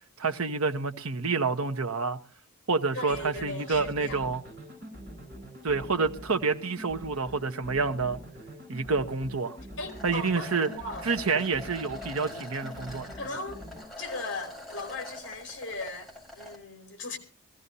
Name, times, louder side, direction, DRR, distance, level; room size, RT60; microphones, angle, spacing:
voice 1, 0.2-2.2 2.7-4.4 5.6-8.2 8.7-9.6 10.0-10.7 11.1-13.1, right 4 dB, 80° right, 1.0 m, -28 dB
voice 2, 2.9-4.3 9.8-11.1 11.4-11.5 13.1-13.6 14.0-17.2, left 2 dB, 55° left, 3.3 m, -38 dB
sound 1, 3.1-13.8, equal, 40° right, 5.5 m, -45 dB
sound 2, 9.9-16.6, left 1 dB, ahead, 4.1 m, -44 dB
23.0 x 15.0 x 2.7 m
head